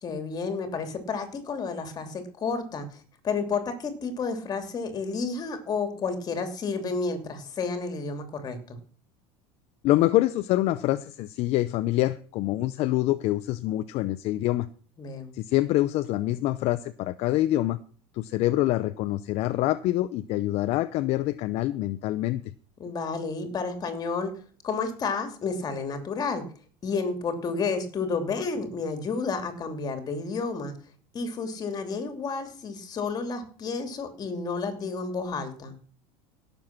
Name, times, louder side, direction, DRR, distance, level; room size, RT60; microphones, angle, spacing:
voice 1, 0.0-8.8 15.0-15.3 22.8-24.3 24.6-26.4 26.8-30.7 31.1-35.8, left 4 dB, 30° left, 8 dB, 2.8 m, -31 dB
voice 2, 9.8-14.7 15.3-17.8 18.1-22.4, left 15 dB, 50° left, 11 dB, 0.7 m, -25 dB
17.0 x 7.1 x 6.0 m, 0.42 s
supercardioid pair, 130°, 13 cm